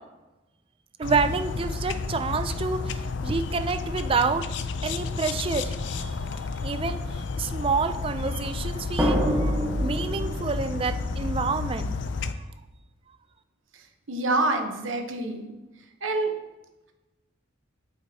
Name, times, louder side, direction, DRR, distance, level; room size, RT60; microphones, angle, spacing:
sound 1, 1.0-12.3, left 4 dB, 65° left, 0.4 m, -31 dB
voice 1, 1.0-4.4 4.8-6.2 6.6-7.0 7.4-9.5 9.8-12.0, right 4 dB, 25° right, 8 dB, 0.4 m, -28 dB
sound 2, 6.3-6.6 9.0-11.6, equal, 10° right, 1.0 m, -27 dB
voice 2, 14.1-15.5 16.0-16.3, right 2 dB, 80° right, 4 dB, 0.9 m, -26 dB
8.6 x 7.9 x 2.8 m, 1.1 s
head